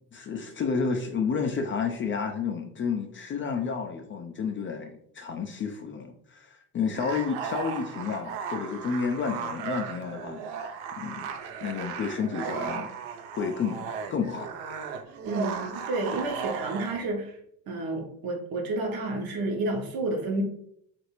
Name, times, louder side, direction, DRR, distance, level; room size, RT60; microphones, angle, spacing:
voice 1, 0.1-10.6 11.0-11.3 11.6-12.9 13.4-13.8 14.1-14.5, left 5 dB, 30° left, 4 dB, 0.4 m, -31 dB
sound 1, 6.9-17.1, right 6 dB, 70° right, 0.5 m, -36 dB
voice 2, 15.2-17.4 17.7-20.4, right 2 dB, 55° right, 2 dB, 0.9 m, -30 dB
3.0 x 2.5 x 2.9 m, 0.69 s
supercardioid pair, 75°, 42 cm